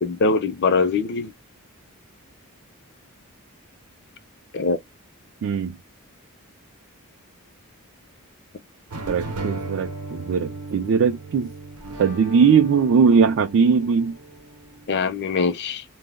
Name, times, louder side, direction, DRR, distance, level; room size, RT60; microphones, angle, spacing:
voice 1, 0.0-1.3 4.5-4.8 14.9-15.8, left 4 dB, 50° left, 0.4 m, -22 dB
voice 2, 5.4-5.7 9.1-11.5 12.0-14.1, right 6 dB, 55° right, 0.3 m, -19 dB
sound 1, 8.9-15.1, right 2 dB, 80° right, 0.7 m, -36 dB
2.1 x 2.0 x 3.3 m
head